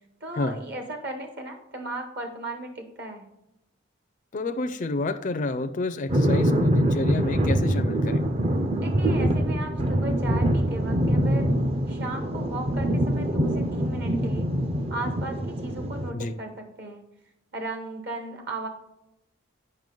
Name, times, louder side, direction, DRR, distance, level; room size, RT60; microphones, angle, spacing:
voice 1, 0.2-3.3 8.8-11.5 11.9-14.5 14.9-17.0 17.5-18.7, right 2 dB, 55° right, 4 dB, 1.1 m, -36 dB
voice 2, 4.3-8.2 16.1-16.3, left 2 dB, 40° left, 8 dB, 0.4 m, -29 dB
sound 1, 6.1-16.1, equal, 30° right, 0.5 m, -24 dB
8.9 x 5.5 x 3.8 m, 0.87 s
head